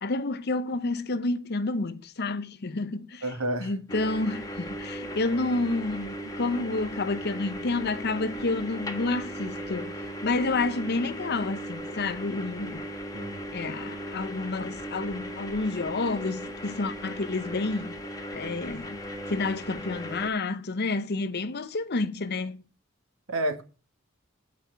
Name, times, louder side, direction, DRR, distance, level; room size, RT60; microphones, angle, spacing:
voice 1, 0.0-3.2 3.6-12.9 13.5-18.0 18.3-19.0 19.3-22.6, left 3 dB, 50° left, 0.8 m, -29 dB
voice 2, 3.2-3.7 13.1-13.4 23.3-23.6, right 1 dB, 85° right, 1.7 m, -29 dB
sound 1, 3.9-20.3, equal, 20° left, 1.5 m, -37 dB
9.4 x 5.2 x 7.9 m
head